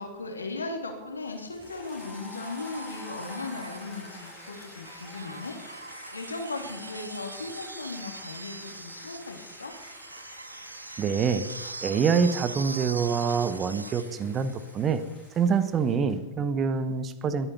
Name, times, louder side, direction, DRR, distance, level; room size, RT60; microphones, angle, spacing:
voice 1, 0.0-9.7, left 3 dB, 75° left, 4 dB, 2.5 m, -37 dB
sound 1, 1.4-15.4 16.8-16.9, right 2 dB, 80° right, 0.5 m, -42 dB
sound 2, 1.6-16.2, left 4 dB, 15° left, 3.1 m, -50 dB
voice 2, 11.0-15.0 15.4-17.5, right 6 dB, 25° right, 13 dB, 1.1 m, -26 dB
21.0 x 9.0 x 6.9 m, 1.1 s
figure-of-eight pair, 90°, 0 cm